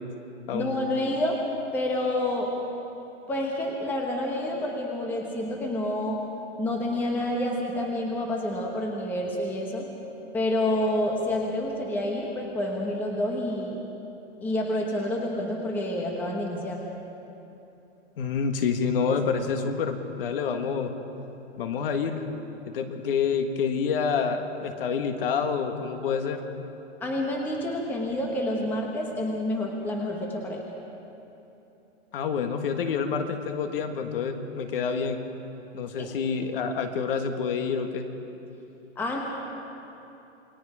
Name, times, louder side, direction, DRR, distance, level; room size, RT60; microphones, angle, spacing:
voice 1, 0.5-1.4 1.7-2.5 3.3-6.2 6.6-9.9 10.3-13.8 14.4-16.9 27.0-30.6 36.0-36.1 39.0-39.2, left 1 dB, 5° left, 0 dB, 1.0 m, -28 dB
voice 2, 18.2-20.9 21.6-22.2 22.7-26.4 32.1-35.2 35.7-38.1, left 6 dB, 50° left, 6 dB, 1.8 m, -28 dB
28.0 x 20.0 x 5.0 m, 2.9 s
hypercardioid pair, 170°, 36 cm